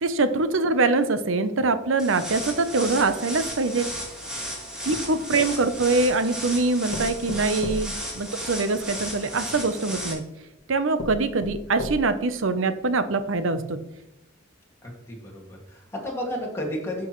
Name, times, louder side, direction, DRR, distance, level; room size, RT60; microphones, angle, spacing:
voice 1, 0.0-3.9 4.9-10.2 10.7-13.8, right 3 dB, 70° right, 11 dB, 0.7 m, -24 dB
sound 1, 2.0-10.1, equal, 5° right, 2.1 m, -34 dB
sound 2, 5.3-6.1 6.9-8.9 9.9-10.0 10.5-10.6 11.0-12.3 12.8-12.9 13.2-13.3, left 1 dB, 60° left, 1.1 m, -35 dB
voice 2, 14.8-17.1, left 1 dB, 15° left, -2 dB, 2.2 m, -33 dB
11.0 x 6.2 x 3.1 m, 0.90 s
head